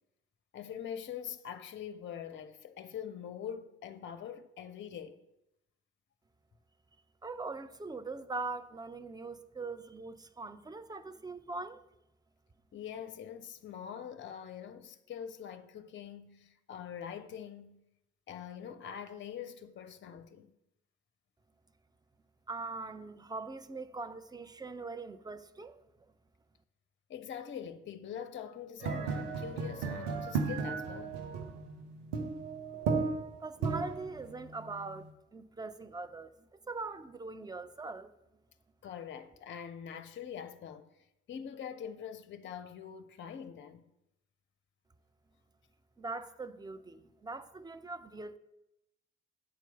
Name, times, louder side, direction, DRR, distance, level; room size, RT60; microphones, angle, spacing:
voice 1, 0.5-5.2 12.7-17.8 18.3-20.5 27.1-31.2 38.8-40.9 41.3-43.9, left 8 dB, 35° left, 0.6 m, -44 dB
voice 2, 7.2-11.8 22.5-25.8 33.4-36.3 36.7-38.1 46.0-48.4, right 3 dB, 15° right, 0.6 m, -42 dB
sound 1, 28.8-35.1, right 5 dB, 75° right, 0.9 m, -35 dB
7.7 x 4.5 x 6.8 m
figure-of-eight pair, 40°, 31 cm